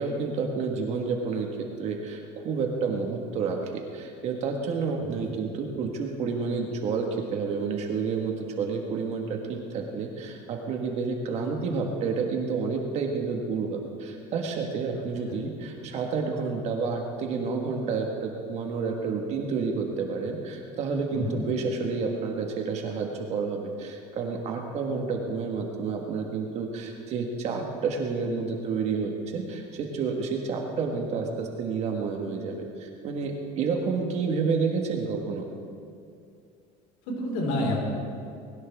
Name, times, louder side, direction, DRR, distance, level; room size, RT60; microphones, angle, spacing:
voice 1, 0.0-1.5 1.8-3.6 3.9-35.5, right 4 dB, 40° right, 1 dB, 1.6 m, -30 dB
voice 2, 5.0-5.3 15.3-15.4 21.1-21.4 37.1-37.8, left 1 dB, 80° left, -1 dB, 4.9 m, -29 dB
20.5 x 18.5 x 3.6 m, 2.5 s
cardioid pair, 170°, 17 cm